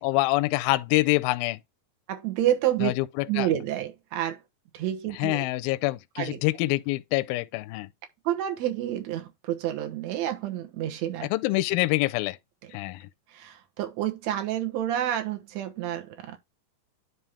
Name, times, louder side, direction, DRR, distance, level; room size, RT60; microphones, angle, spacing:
voice 1, 0.0-1.6 2.8-3.5 5.1-7.9 11.3-12.4 12.7-13.1, left 20 dB, 80° left, 2.1 m, -26 dB
voice 2, 2.1-3.0 3.3-4.4 4.7-5.5 6.2-6.4 8.3-11.3 13.3-16.4, right 12 dB, 65° right, 1.9 m, -29 dB
10.5 x 3.6 x 3.4 m
omnidirectional pair, 4.4 m